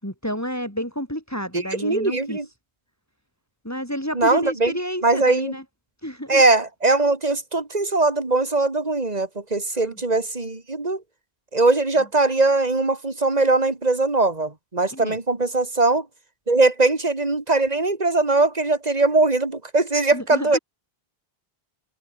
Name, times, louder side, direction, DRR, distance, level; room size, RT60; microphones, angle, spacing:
voice 1, 0.0-2.4 3.6-5.6 6.0-6.4 9.8-10.0 14.9-15.2 20.1-20.6, equal, 15° left, 7.6 m, -30 dB
voice 2, 1.5-2.4 4.1-4.8 5.0-5.5 6.3-11.0 11.5-16.1 16.5-20.6, right 3 dB, 40° right, 2.8 m, -21 dB
omnidirectional pair, 1.0 m